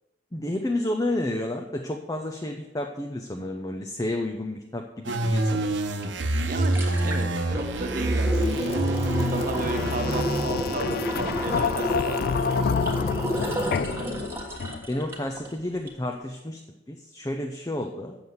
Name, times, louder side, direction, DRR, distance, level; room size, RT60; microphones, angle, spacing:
voice 1, 0.3-5.8 9.0-9.2 13.3-13.6 14.9-16.6 16.9-18.2, left 1 dB, 20° left, 3 dB, 0.6 m, -31 dB
sound 1, 5.0-10.4, right 2 dB, 75° right, 0.9 m, -26 dB
sound 2, 6.0-6.1 6.4-15.5 15.9-16.0, equal, 15° right, 1.4 m, -30 dB
voice 2, 6.3-8.8 9.2-12.2 12.5-12.6, right 2 dB, 45° right, 6 dB, 1.1 m, -34 dB
sound 3, 8.3-15.1, left 5 dB, 50° left, 0.3 m, -29 dB
7.5 x 6.9 x 8.0 m, 0.98 s
head